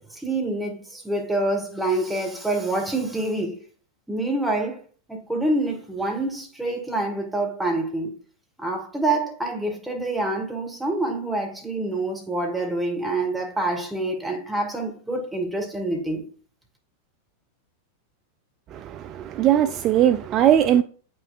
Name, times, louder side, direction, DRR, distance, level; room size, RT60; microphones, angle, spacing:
voice 1, 0.0-3.6 4.1-4.8 5.1-8.1 8.6-16.2, right 2 dB, 5° right, 1.8 m, -26 dB
voice 2, 18.7-20.8, right 11 dB, 35° right, 0.3 m, -20 dB
8.2 x 5.5 x 2.5 m
figure-of-eight pair, 90°, 0 cm